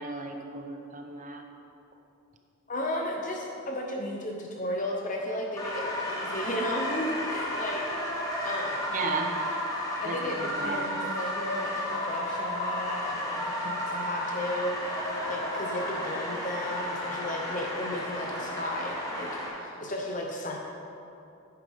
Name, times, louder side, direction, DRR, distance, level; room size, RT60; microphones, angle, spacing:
voice 1, 0.0-1.5 8.9-9.3 10.0-10.9, right 4 dB, 35° right, 3 dB, 0.7 m, -34 dB
voice 2, 2.7-7.9 8.2-8.9 10.0-20.6, left 1 dB, 35° left, 0 dB, 0.7 m, -34 dB
sound 1, 5.6-19.5, left 1 dB, 15° left, 1.2 m, -33 dB
9.6 x 9.2 x 3.5 m, 2.7 s
head